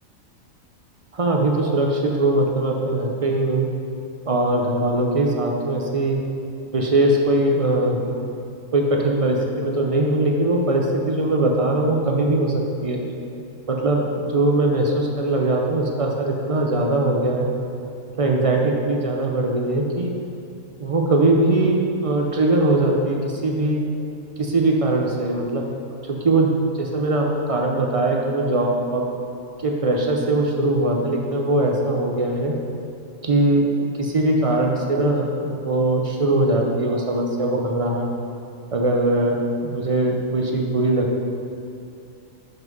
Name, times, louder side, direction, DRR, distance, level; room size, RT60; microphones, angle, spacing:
voice 1, 1.1-3.7 4.3-6.2 6.7-8.1 8.7-13.0 13.7-17.5 18.2-20.1 20.8-23.8 24.4-25.6 26.0-29.0 29.6-32.5 33.2-38.1 38.7-41.2, right 2 dB, 50° right, 0 dB, 0.4 m, -21 dB
5.8 x 5.5 x 5.2 m, 2.6 s
omnidirectional pair, 1.4 m